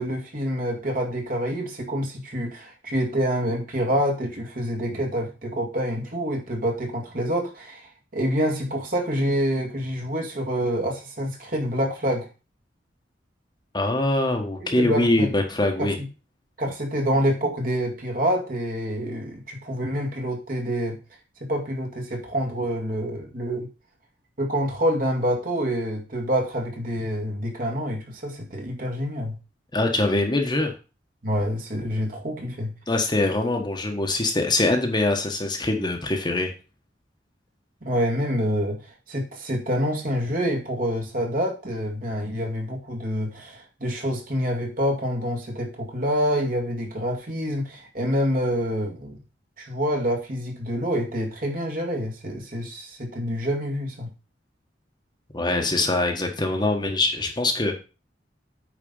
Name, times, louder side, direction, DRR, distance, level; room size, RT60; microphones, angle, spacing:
voice 1, 0.0-12.3 14.6-15.3 15.8-15.9 16.6-21.0 21.5-23.7 24.4-29.4 31.2-32.7 37.8-49.2 49.6-54.1, equal, 50° right, 2 dB, 2.1 m, -27 dB
voice 2, 13.7-16.0 29.7-30.7 32.9-36.5 55.3-57.8, left 2 dB, 25° left, 4 dB, 1.2 m, -23 dB
8.8 x 4.1 x 5.5 m, 0.32 s
head